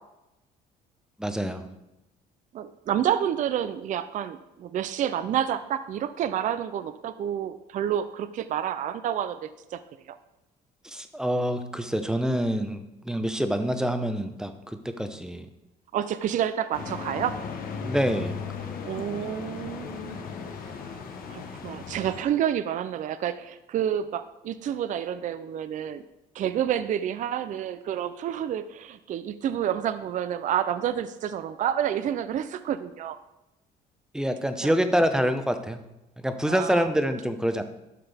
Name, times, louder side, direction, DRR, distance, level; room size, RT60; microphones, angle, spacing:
voice 1, 1.2-1.7 10.8-15.5 17.8-18.3 34.1-35.8 36.2-37.6, equal, 5° right, 8 dB, 0.8 m, -26 dB
voice 2, 2.5-9.8 10.1-10.2 15.9-17.4 18.8-20.3 21.3-26.0 26.3-33.2 34.6-34.7 36.5-36.9, right 10 dB, 50° right, 12 dB, 0.5 m, -29 dB
sound 1, 16.7-22.2, left 5 dB, 60° left, 1.1 m, -36 dB
12.0 x 5.9 x 3.4 m, 0.93 s
cardioid pair, 110°, 17 cm